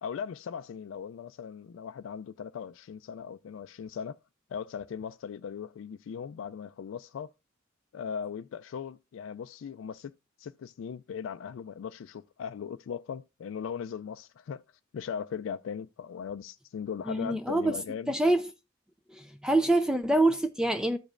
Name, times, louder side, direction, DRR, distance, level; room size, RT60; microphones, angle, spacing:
voice 1, 0.0-4.2 4.5-7.3 7.9-10.1 10.4-14.6 14.9-18.2, left 7 dB, 70° left, 0.3 m, -38 dB
voice 2, 17.1-17.8 18.1-18.5 19.1-21.0, right 2 dB, 5° right, 0.4 m, -25 dB
14.0 x 5.1 x 2.4 m
head